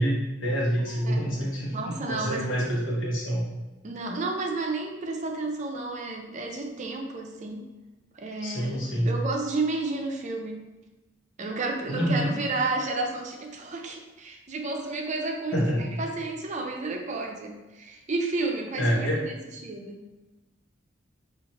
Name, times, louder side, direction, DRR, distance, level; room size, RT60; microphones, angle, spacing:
voice 1, 0.0-3.4 8.4-9.1 11.9-12.3 15.5-15.8 18.8-19.2, equal, 75° left, -3 dB, 1.0 m, -27 dB
voice 2, 0.8-2.5 3.8-7.7 8.1-10.6 11.4-19.3 19.6-20.1, right 3 dB, 40° right, 2 dB, 0.5 m, -32 dB
3.9 x 2.5 x 2.9 m, 1.1 s
head